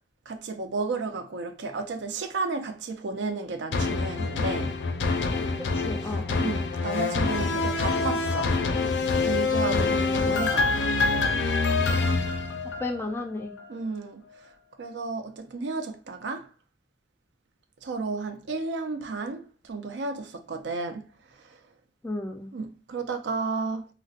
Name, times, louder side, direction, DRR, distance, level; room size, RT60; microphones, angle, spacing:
voice 1, 0.3-4.8 6.4-8.5 9.2-10.7 13.7-14.2 14.8-16.5 17.8-21.1 22.5-23.9, right 3 dB, 85° right, 0.4 m, -32 dB
sound 1, 3.7-13.1 13.6-13.7, left 3 dB, 85° left, 0.4 m, -26 dB
voice 2, 5.7-6.5 9.6-10.5 12.6-13.5 22.0-22.5, left 2 dB, 15° left, 0.3 m, -34 dB
3.9 x 2.1 x 2.4 m
head